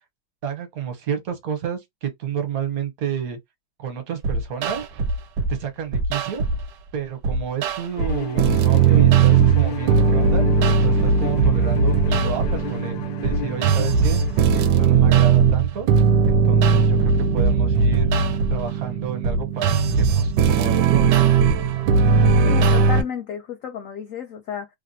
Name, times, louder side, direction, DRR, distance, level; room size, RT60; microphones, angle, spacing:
voice 1, 0.4-3.4 3.8-4.8 5.5-6.4 6.9-10.5 10.8-14.2 14.5-15.9 16.2-18.1 18.5-21.3, right 7 dB, 55° right, 1.3 m, -30 dB
sound 1, 4.2-5.5 5.9-6.6 7.2-23.0, right 5 dB, 75° right, 1.2 m, -18 dB
Bowed string instrument, 8.0-14.5, left 9 dB, 90° left, 1.4 m, -34 dB
voice 2, 22.4-24.7, left 8 dB, 70° left, 0.8 m, -32 dB
3.3 x 2.2 x 2.6 m
omnidirectional pair, 2.0 m